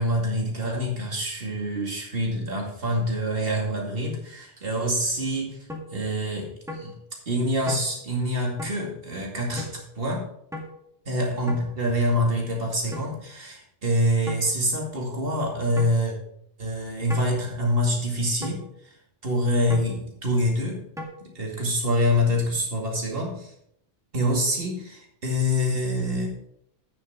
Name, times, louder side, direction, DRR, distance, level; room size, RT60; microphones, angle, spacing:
voice 1, 0.0-5.6 5.9-6.9 7.3-10.3 11.1-16.2 16.6-18.9 19.2-20.8 21.2-23.5 24.1-26.3, equal, 55° right, 0 dB, 2.5 m, -26 dB
sound 1, 5.7-5.9 6.7-6.9 7.7-7.9 8.6-8.8 9.6-9.7 10.5-10.7 11.5-11.7 12.9-13.1 14.3-14.5 15.8-16.0 17.1-17.3 18.4-18.6 19.7-19.9 21.0-21.1, left 1 dB, 5° right, 1.9 m, -35 dB
9.2 x 6.9 x 5.1 m, 0.72 s
omnidirectional pair, 1.2 m